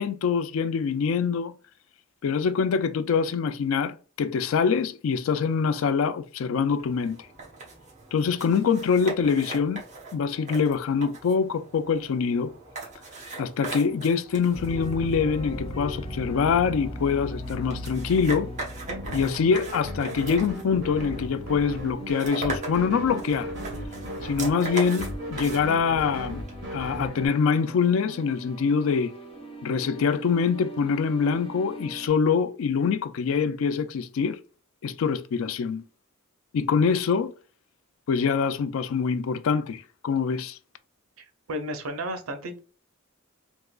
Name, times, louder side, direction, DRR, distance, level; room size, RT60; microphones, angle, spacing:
voice 1, 0.0-1.5 2.2-7.2 8.1-9.8 10.1-12.5 13.4-18.5 19.1-23.5 24.2-26.4 26.7-29.1 29.6-34.4 34.8-35.8 36.5-37.3 38.1-40.6, left 6 dB, 70° left, 0.3 m, -24 dB
sound 1, 6.7-26.5, right 3 dB, 35° right, 1.0 m, -40 dB
sound 2, 14.5-32.1, right 1 dB, 30° left, 0.7 m, -39 dB
sound 3, 18.8-27.3, equal, 60° right, 1.5 m, -36 dB
voice 2, 41.2-42.6, equal, 90° right, 0.6 m, -33 dB
3.6 x 2.8 x 2.3 m
head